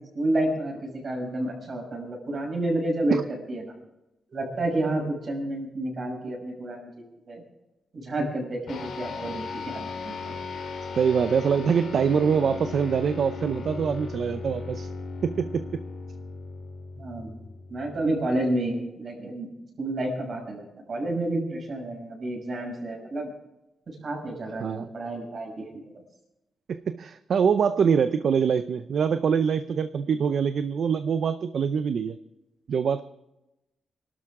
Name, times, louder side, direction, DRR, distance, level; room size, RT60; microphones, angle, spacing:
voice 1, 0.1-3.2 3.5-3.7 4.3-7.4 7.9-10.3 17.0-17.3 17.7-19.5 19.8-23.3 23.9-25.8, right 1 dB, 40° right, 0 dB, 6.3 m, -30 dB
sound 1, 8.7-18.4, left 4 dB, 75° left, 3.2 m, -37 dB
voice 2, 11.0-14.9 15.2-15.8 24.6-24.9 26.7-32.2 32.7-33.0, right 6 dB, 60° right, 10 dB, 0.6 m, -24 dB
27.0 x 12.5 x 3.7 m, 0.93 s
wide cardioid pair, 160°, 0 cm